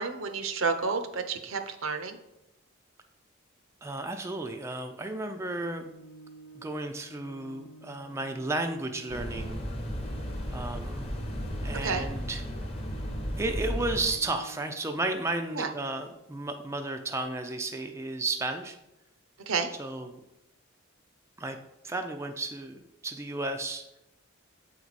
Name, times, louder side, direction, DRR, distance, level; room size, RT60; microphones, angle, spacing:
voice 1, 0.0-2.2 11.8-12.1 15.5-15.7 19.5-19.7, right 5 dB, 75° right, 8 dB, 0.7 m, -30 dB
voice 2, 3.8-5.8 6.6-9.6 10.5-11.1 11.6-12.4 13.4-18.8 19.8-20.2 21.4-21.6 21.8-23.8, right 2 dB, 15° right, 5 dB, 0.4 m, -33 dB
Organ, 5.3-16.3, right 1 dB, 65° left, 0.5 m, -52 dB
sound 1, 9.1-14.1, equal, 30° left, 1.0 m, -34 dB
7.7 x 4.6 x 4.1 m, 0.90 s
head